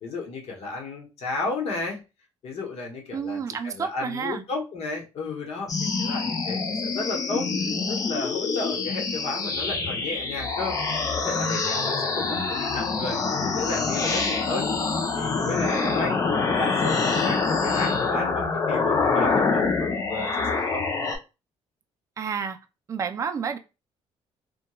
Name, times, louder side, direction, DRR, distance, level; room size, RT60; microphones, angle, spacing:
voice 1, 0.0-2.0 2.4-7.5 7.9-10.8 11.1-14.7 15.2-20.8, left 3 dB, 60° left, 0.9 m, -33 dB
voice 2, 3.1-4.4 15.7-16.0 22.2-22.6 22.9-23.6, right 6 dB, 30° right, 0.3 m, -30 dB
sound 1, 5.7-21.2, left 4 dB, 30° left, 0.5 m, -26 dB
2.9 x 2.2 x 2.3 m
cardioid pair, 145°, 11 cm